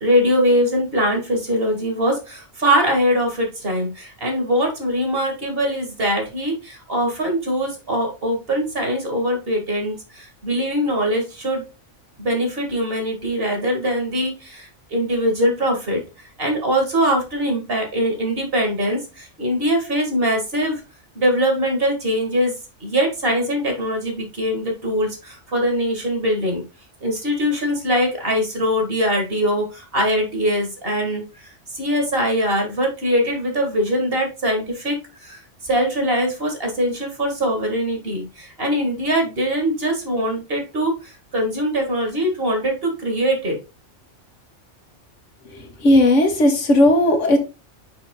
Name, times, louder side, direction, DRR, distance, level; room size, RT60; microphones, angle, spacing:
voice 1, 0.0-11.6 12.2-20.8 21.1-22.5 22.8-26.6 27.0-43.6, equal, 50° right, 2 dB, 2.2 m, -22 dB
voice 2, 45.5-47.4, left 1 dB, 75° left, 4 dB, 1.7 m, -16 dB
6.0 x 5.5 x 3.8 m, 0.30 s
omnidirectional pair, 1.3 m